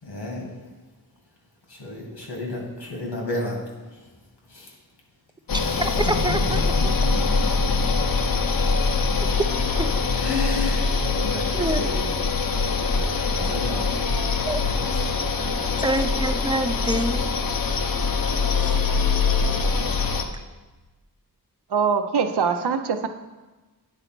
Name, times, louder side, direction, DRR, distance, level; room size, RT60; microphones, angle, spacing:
voice 1, 0.0-0.6 1.7-4.1 4.5-4.8 5.5-8.1 8.6-8.7 9.0-9.2 10.1-14.2 14.5-15.2, left 2 dB, 85° left, -1 dB, 2.1 m, -33 dB
sound 1, 5.5-20.2, left 4 dB, 60° left, 0.7 m, -23 dB
voice 2, 5.8-6.9 9.4-9.5 9.8-9.9 11.5-11.8 14.5-14.6 15.8-17.2 18.6-18.8, right 2 dB, 10° right, 8 dB, 0.4 m, -26 dB
voice 3, 21.7-23.1, right 6 dB, 80° right, 7 dB, 0.7 m, -23 dB
9.0 x 4.0 x 6.0 m, 1.2 s
wide cardioid pair, 100°, 39 cm